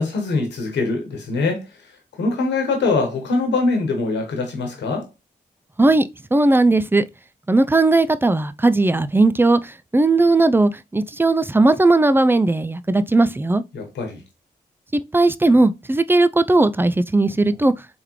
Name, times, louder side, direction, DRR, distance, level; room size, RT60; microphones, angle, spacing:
voice 1, 0.0-5.1 13.7-14.2, left 3 dB, 80° left, 1.2 m, -23 dB
voice 2, 5.8-7.0 7.5-13.6 15.1-17.7, right 2 dB, 10° right, 0.4 m, -17 dB
3.6 x 3.4 x 3.1 m
supercardioid pair, 40°, 18 cm